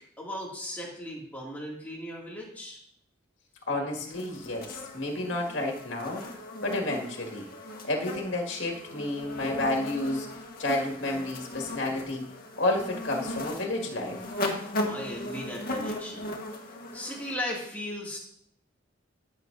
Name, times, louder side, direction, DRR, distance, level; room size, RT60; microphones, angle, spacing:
voice 1, 0.0-2.8 14.8-16.4 16.9-18.2, left 1 dB, 10° left, -4 dB, 2.2 m, -37 dB
voice 2, 3.7-7.5 7.8-10.3 10.6-12.3 12.6-14.2, left 2 dB, 70° left, 0 dB, 2.0 m, -31 dB
sound 1, 4.1-17.3, left 1 dB, 50° left, 1.6 m, -37 dB
15.5 x 7.6 x 2.6 m, 0.68 s
head